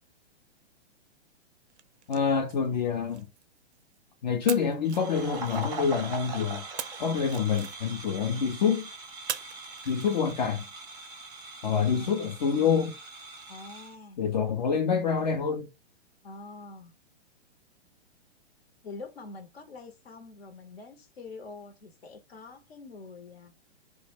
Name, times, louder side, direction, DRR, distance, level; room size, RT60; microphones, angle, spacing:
sound 1, 1.7-4.0 4.5-6.0 6.8-8.2 9.3-10.6, right 8 dB, 80° right, 0.5 m, -42 dB
voice 1, 2.1-3.3 4.2-6.6 7.0-8.9 9.9-10.7 11.6-13.0 14.2-15.7, left 6 dB, 40° left, 0.4 m, -27 dB
sound 2, 4.8-13.9, right 3 dB, 10° right, 0.5 m, -41 dB
voice 2, 11.8-12.2 13.5-14.2 16.2-17.0 18.8-23.5, left 3 dB, 65° left, 0.8 m, -45 dB
2.1 x 2.1 x 3.1 m
figure-of-eight pair, 120°, 33 cm